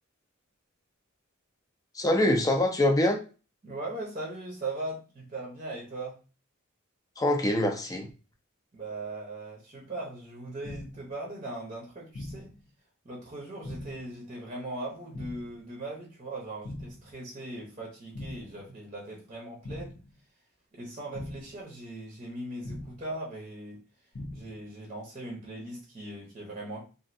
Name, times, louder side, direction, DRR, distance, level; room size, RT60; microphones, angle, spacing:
voice 1, 1.9-3.2 7.2-8.1, left 1 dB, 15° left, 0.5 m, -24 dB
voice 2, 3.6-6.2 8.7-12.5 13.0-20.0 20.7-23.8 24.3-26.9, right 2 dB, 35° right, 0.7 m, -39 dB
sound 1, 10.6-11.1 12.1-12.6 13.6-14.1 15.1-15.6 16.6-17.1 18.1-18.6 19.6-20.1 21.1-21.6 22.6-23.1 24.1-24.6, left 1 dB, 70° left, 0.7 m, -41 dB
3.0 x 2.6 x 2.6 m
head